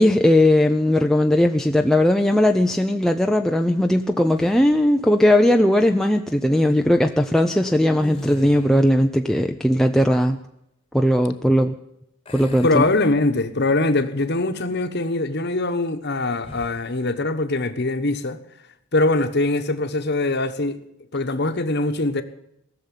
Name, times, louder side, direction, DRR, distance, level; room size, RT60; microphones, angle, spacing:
voice 1, 0.0-10.4 10.9-11.7 12.3-12.8, left 1 dB, ahead, 0.5 m, -18 dB
sound 1, 4.3-5.0 7.9-9.0 12.2-13.7 14.2-14.4 16.4-16.9, left 1 dB, 25° left, 1.3 m, -40 dB
voice 2, 12.6-18.4 18.9-20.8 21.1-22.2, left 2 dB, 45° left, 1.1 m, -22 dB
19.0 x 7.0 x 9.9 m
head